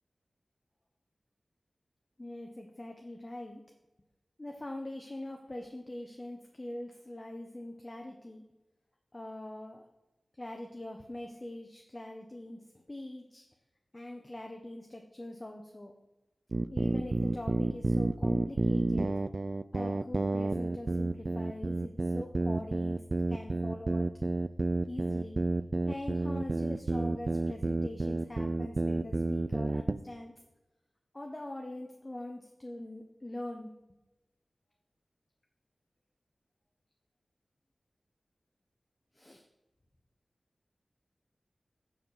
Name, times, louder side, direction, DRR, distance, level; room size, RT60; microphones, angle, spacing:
voice 1, 2.2-3.6 4.4-8.4 9.1-9.8 10.4-13.4 13.9-15.9 16.7-19.1 19.7-23.0 23.3-24.1 24.9-25.4 25.9-30.3 31.1-33.7 39.1-39.4, left 1 dB, 30° left, 3 dB, 1.1 m, -43 dB
sound 1, 16.5-30.0, right 2 dB, 50° right, 0.4 m, -30 dB
9.6 x 4.4 x 6.9 m, 1.0 s
cardioid pair, 40°, 0 cm